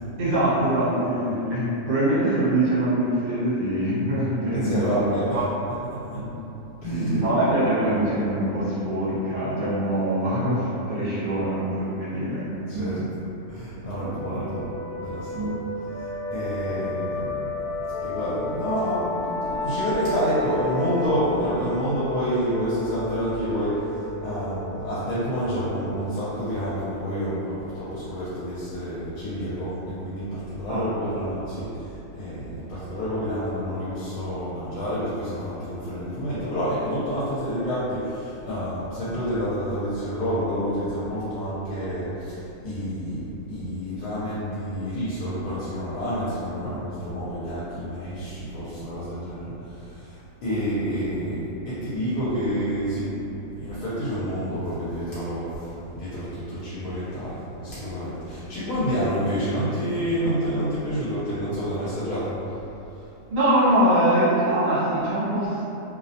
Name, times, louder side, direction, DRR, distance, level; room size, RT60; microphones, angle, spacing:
voice 1, 0.2-5.4 6.1-6.4 6.9-13.1 13.8-14.5 15.3-15.6 16.7-17.0 30.7-30.9 46.6-46.8 63.3-65.6, right 1 dB, 60° right, -10 dB, 1.2 m, -24 dB
voice 2, 4.5-5.9 6.1-6.2 6.8-7.3 12.7-13.0 13.5-14.7 15.0-17.5 18.0-53.3 53.6-62.5, equal, 80° left, -11 dB, 1.1 m, -28 dB
sound 1, 14.0-29.3, left 2 dB, 40° left, 0.8 m, -33 dB
2.7 x 2.0 x 2.6 m, 2.9 s
omnidirectional pair, 1.7 m